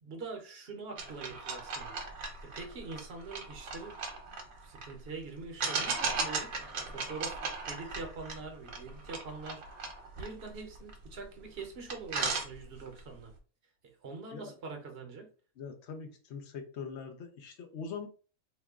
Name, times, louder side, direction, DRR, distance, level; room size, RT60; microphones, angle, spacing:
voice 1, 0.0-2.0 2.4-4.0 4.6-6.5 6.9-9.6 10.2-13.3 14.0-15.3, right 4 dB, 50° right, 0.9 m, -44 dB
sound 1, 1.0-4.9 5.6-11.2 11.6-11.7 11.9-13.0, right 4 dB, 70° right, 1.1 m, -37 dB
voice 2, 15.6-18.1, left 5 dB, 60° left, 0.8 m, -42 dB
2.9 x 2.2 x 3.5 m
omnidirectional pair, 1.5 m